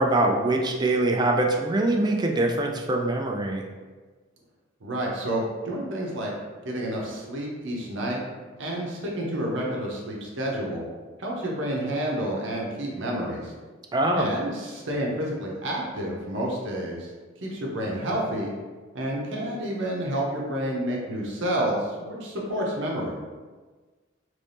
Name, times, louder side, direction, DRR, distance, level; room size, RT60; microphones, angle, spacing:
voice 1, 0.0-3.6 13.9-14.3, right 2 dB, 20° right, 1 dB, 0.4 m, -23 dB
voice 2, 4.8-6.3 6.6-8.2 8.6-10.9 11.2-13.5 14.2-17.1 17.4-18.5 18.9-23.1, right 1 dB, 65° right, -2 dB, 0.8 m, -29 dB
3.0 x 2.7 x 3.3 m, 1.4 s
head